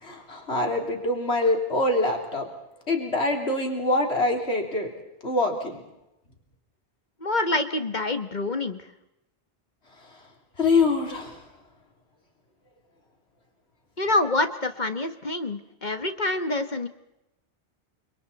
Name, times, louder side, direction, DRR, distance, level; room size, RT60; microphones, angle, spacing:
voice 1, 0.0-2.5 2.9-4.9 5.2-5.8 10.6-11.4, left 2 dB, 70° left, 2 dB, 3.9 m, -24 dB
voice 2, 7.2-8.9 14.0-16.9, left 2 dB, 40° left, 8 dB, 1.6 m, -26 dB
29.5 x 27.0 x 4.2 m, 0.89 s
omnidirectional pair, 1.1 m